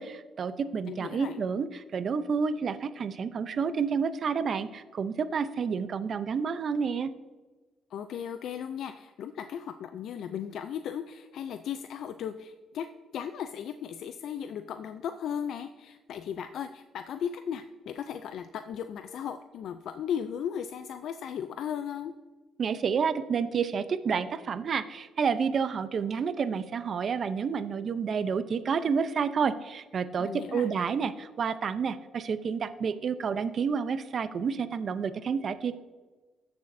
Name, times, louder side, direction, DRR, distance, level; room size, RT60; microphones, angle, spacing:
voice 1, 0.0-7.1 22.6-35.8, right 6 dB, 50° right, 12 dB, 0.6 m, -29 dB
voice 2, 0.9-1.4 7.9-22.1 30.2-30.7, left 8 dB, 75° left, 9 dB, 0.4 m, -36 dB
15.5 x 6.9 x 2.6 m, 1.3 s
cardioid pair, 90°, 0 cm